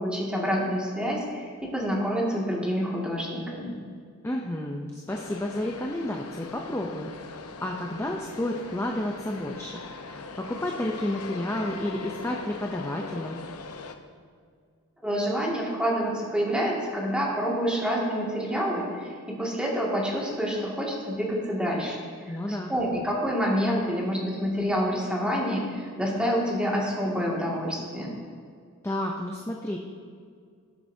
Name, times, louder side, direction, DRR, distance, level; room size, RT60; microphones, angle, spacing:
voice 1, 0.0-3.8 15.0-22.0 22.2-28.1, equal, 5° right, -4 dB, 2.2 m, -27 dB
voice 2, 4.2-9.8 10.0-13.4 22.3-22.7 28.8-29.8, left 1 dB, 10° left, 0 dB, 0.6 m, -31 dB
sound 1, 5.1-14.0, left 4 dB, 80° left, 0.7 m, -41 dB
19.5 x 7.6 x 2.8 m, 2.1 s
head